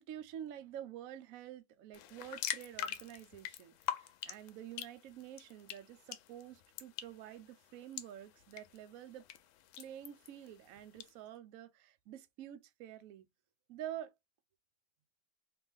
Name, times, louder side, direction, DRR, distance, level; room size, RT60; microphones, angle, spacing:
voice 1, 0.0-9.3 9.8-13.3 13.7-14.1, right 11 dB, 80° right, 0.7 m, -48 dB
sound 1, 1.9-11.1, left 11 dB, 85° left, 1.4 m, -45 dB
3.2 x 3.0 x 3.5 m
omnidirectional pair, 2.1 m